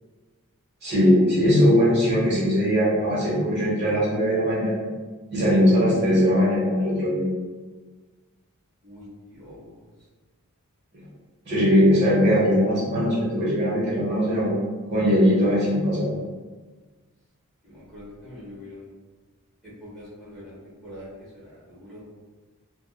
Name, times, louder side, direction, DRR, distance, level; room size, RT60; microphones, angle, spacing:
voice 1, 0.8-4.8 5.3-7.2 11.4-14.6 14.9-16.1, equal, 50° right, -7 dB, 1.1 m, -20 dB
voice 2, 8.8-9.8 17.6-18.9 19.8-21.1 21.3-22.0, left 1 dB, 5° left, -10 dB, 1.1 m, -44 dB
3.7 x 2.4 x 2.3 m, 1.4 s
head